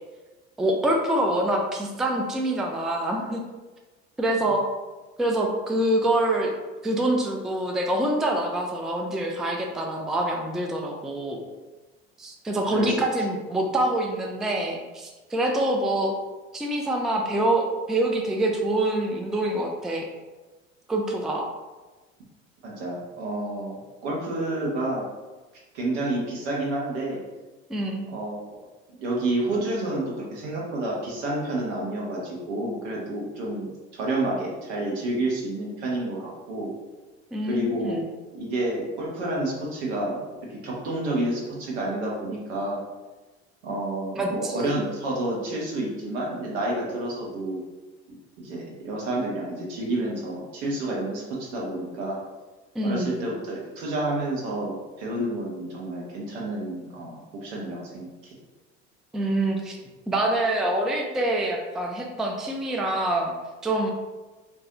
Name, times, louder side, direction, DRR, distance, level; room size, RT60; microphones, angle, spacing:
voice 1, 0.6-3.4 4.2-4.6 5.2-6.5 6.8-11.4 12.2-16.1 16.5-20.1 20.9-21.5 27.7-28.1 37.3-38.0 44.2-44.7 52.7-53.2 59.1-59.8 60.1-63.3 63.6-63.9, right 1 dB, ahead, 1 dB, 0.3 m, -25 dB
voice 2, 22.6-25.1 25.7-27.2 28.1-28.4 29.0-36.7 37.4-38.0 38.3-40.2 40.5-42.8 43.6-47.6 48.4-52.2 52.8-58.3, right 1 dB, 80° right, -3 dB, 1.1 m, -29 dB
2.5 x 2.3 x 3.7 m, 1.2 s
hypercardioid pair, 80°, 34 cm